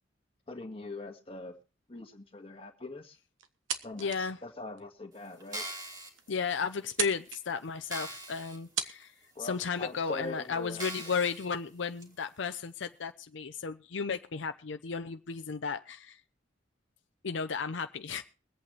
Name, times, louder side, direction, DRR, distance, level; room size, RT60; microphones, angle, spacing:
voice 1, 0.5-1.6 1.9-3.2 3.8-5.6 9.3-10.9, left 2 dB, 30° left, 1.6 m, -42 dB
sound 1, 3.4-4.3 4.7-4.8 5.5-5.6 5.9-6.0 6.2-6.5 6.8-7.4 8.3-8.4 8.8-9.0, right 8 dB, 90° right, 1.3 m, -35 dB
voice 2, 4.0-4.4 6.3-9.1 9.4-16.2 17.2-18.2, left 5 dB, 75° left, 0.6 m, -34 dB
sound 2, 5.4-6.1 6.8-6.9 7.3-7.4 7.9-8.6 9.0-9.1 9.9-10.0 10.8-11.5 12.0-12.1, right 1 dB, 20° right, 2.2 m, -41 dB
23.0 x 8.5 x 3.2 m
head